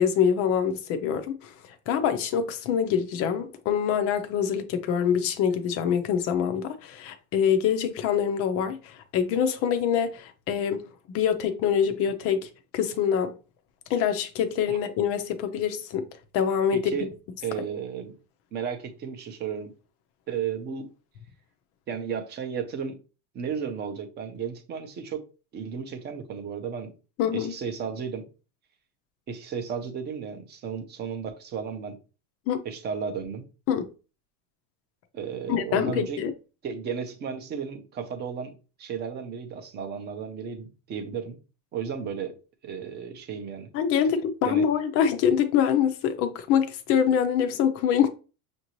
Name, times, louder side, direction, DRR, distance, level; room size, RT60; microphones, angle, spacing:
voice 1, 0.0-1.5 1.9-13.3 13.9-16.1 16.3-16.8 27.2-27.5 32.5-32.6 33.7-33.9 35.5-36.3 43.7-48.1, left 8 dB, 30° left, 0.5 m, -25 dB
voice 2, 16.7-17.1 17.4-18.1 18.5-19.7 20.3-20.9 21.9-23.0 23.3-25.2 25.5-26.9 27.3-28.2 29.3-32.0 32.6-33.5 35.1-36.2 36.6-41.4 41.7-42.4 42.6-43.7 44.4-44.6, right 7 dB, 25° right, 0.6 m, -34 dB
6.5 x 2.7 x 2.9 m
supercardioid pair, 155°, 46 cm